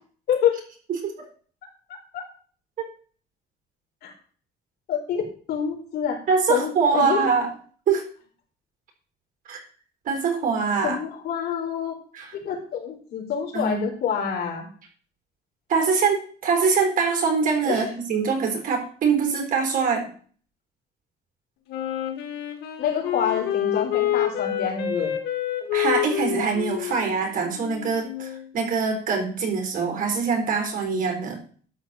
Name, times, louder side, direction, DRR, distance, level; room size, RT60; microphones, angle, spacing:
voice 1, 4.9-5.2 5.5-6.2 6.5-7.3 10.8-12.0 12.3-14.7 17.7-17.8 22.8-25.1, left 8 dB, 70° left, 1 dB, 4.1 m, -27 dB
voice 2, 6.3-7.5 7.9-8.0 9.5-9.6 10.1-11.0 12.1-12.3 13.5-13.8 15.7-20.1 25.7-31.4, right 5 dB, 55° right, 3 dB, 4.1 m, -23 dB
Wind instrument woodwind instrument, 21.7-28.5, left 11 dB, 85° left, 2.3 m, -28 dB
12.0 x 4.6 x 7.3 m, 0.43 s
cardioid pair, 110°, 17 cm